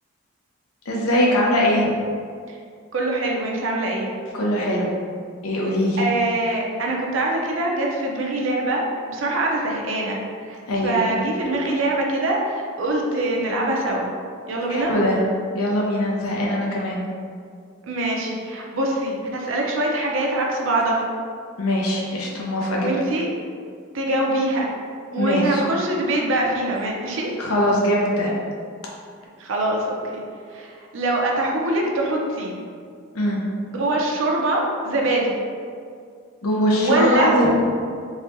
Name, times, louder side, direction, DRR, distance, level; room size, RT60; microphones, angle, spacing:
voice 1, 0.9-1.9 4.3-4.9 5.4-6.0 10.7-11.1 14.7-15.2 15.5-17.1 21.6-22.9 25.2-25.6 27.4-28.3 33.1-33.4 36.4-37.5, left 1 dB, 90° left, -3 dB, 0.7 m, -21 dB
voice 2, 2.9-4.1 6.0-8.8 9.1-10.2 10.5-14.1 14.5-14.9 17.9-21.1 22.8-23.3 23.9-24.7 25.1-27.3 29.4-30.2 30.5-32.6 33.7-35.3 36.8-37.3, right 2 dB, 65° right, -1 dB, 0.5 m, -23 dB
4.0 x 2.8 x 2.6 m, 2.2 s
head